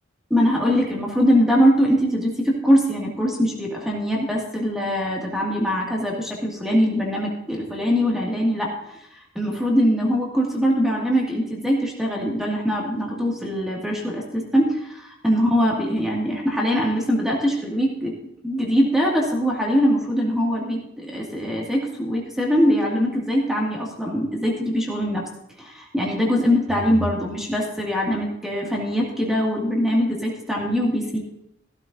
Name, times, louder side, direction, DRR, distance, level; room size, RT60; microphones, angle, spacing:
voice 1, 0.3-8.7 9.1-18.1 18.4-25.2 25.6-31.2, equal, ahead, -3 dB, 2.1 m, -22 dB
15.0 x 12.5 x 2.7 m, 0.79 s
head